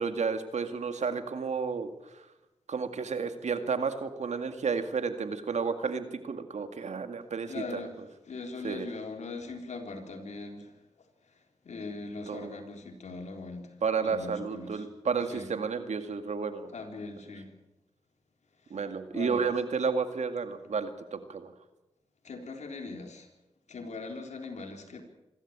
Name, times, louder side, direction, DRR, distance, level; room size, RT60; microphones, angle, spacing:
voice 1, 0.0-1.9 2.1-2.2 2.7-7.8 8.6-8.9 12.3-12.5 13.8-16.7 18.7-21.5, right 5 dB, 75° right, 9 dB, 2.1 m, -31 dB
voice 2, 7.5-8.0 8.3-10.8 11.6-13.8 14.0-14.9 15.3-15.5 16.7-17.5 18.6-18.8 19.1-19.4 22.2-23.3 23.7-25.0, left 3 dB, 75° left, 4 dB, 3.8 m, -40 dB
26.0 x 13.0 x 8.8 m, 1.0 s
cardioid pair, 45°, 12 cm